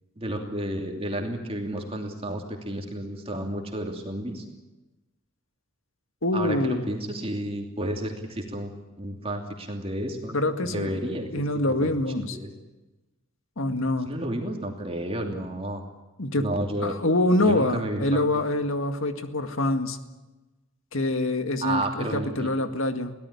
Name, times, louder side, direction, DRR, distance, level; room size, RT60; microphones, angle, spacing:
voice 1, 0.2-4.4 6.3-8.7 9.0-10.4 10.6-11.9 12.2-12.5 14.0-15.8 16.4-17.0 17.4-18.2 21.6-22.5, right 1 dB, 25° right, 2 dB, 2.8 m, -31 dB
voice 2, 6.2-6.8 10.3-10.9 11.3-12.4 13.6-14.1 16.2-16.5 16.8-20.0 20.9-23.1, left 1 dB, 65° left, 7 dB, 2.0 m, -25 dB
24.0 x 17.0 x 9.8 m, 1.1 s
head